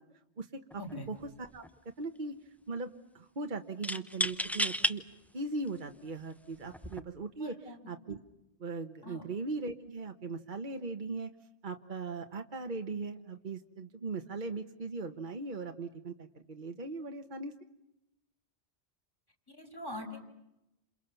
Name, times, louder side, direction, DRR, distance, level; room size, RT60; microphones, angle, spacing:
voice 1, 0.4-1.6 2.0-2.4 2.7-5.0 5.3-7.5 7.9-8.2 8.6-11.3 11.6-17.5, right 3 dB, 45° right, 6 dB, 1.5 m, -39 dB
sound 1, 0.7-0.9 1.3-1.9 3.8-5.0 5.7-5.8 6.7-7.0, equal, ahead, 0.8 m, -32 dB
voice 2, 7.4-7.8 9.0-9.2 19.5-20.2, left 1 dB, 20° left, 5 dB, 5.9 m, -43 dB
29.5 x 28.0 x 7.1 m, 0.90 s
omnidirectional pair, 1.1 m